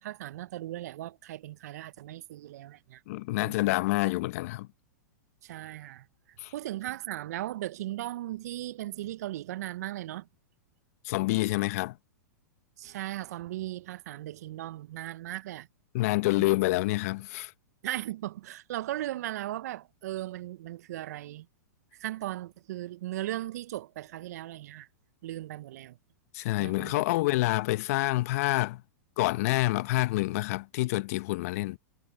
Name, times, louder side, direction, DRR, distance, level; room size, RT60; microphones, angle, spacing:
voice 1, 0.0-3.0 3.4-3.7 5.4-6.1 6.5-10.3 12.8-15.7 17.8-21.5 22.0-24.9 25.2-26.0 26.4-27.0, right 14 dB, 60° right, 1.2 m, -37 dB
voice 2, 3.1-4.7 6.4-6.5 11.0-12.0 15.9-17.5 26.3-28.8 29.2-31.8, left 19 dB, 55° left, 1.1 m, -27 dB
hypercardioid pair, 110°, 10 cm